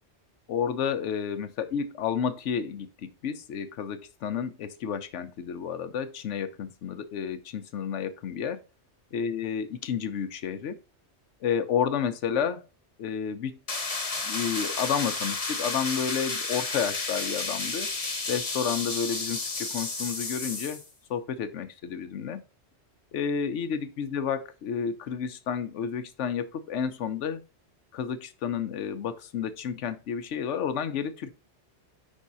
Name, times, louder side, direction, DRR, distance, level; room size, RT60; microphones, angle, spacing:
voice 1, 0.5-8.6 9.1-10.8 11.4-12.6 13.0-13.6 14.2-17.9 18.3-20.8 21.1-22.4 23.1-27.4 27.9-31.3, left 7 dB, 80° left, 1.1 m, -31 dB
sound 1, 13.7-20.9, left 3 dB, 35° left, 1.0 m, -32 dB
5.4 x 3.6 x 5.4 m
omnidirectional pair, 1.2 m